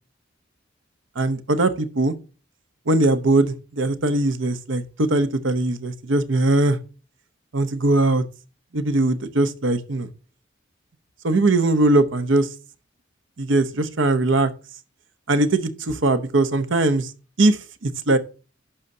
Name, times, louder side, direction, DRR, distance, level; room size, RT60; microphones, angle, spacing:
voice 1, 1.2-2.1 2.9-6.8 7.5-8.2 8.7-10.1 11.2-12.5 13.4-14.5 15.3-17.1 17.4-18.2, right 2 dB, 70° right, 0.8 m, -20 dB
11.5 x 6.5 x 2.7 m
head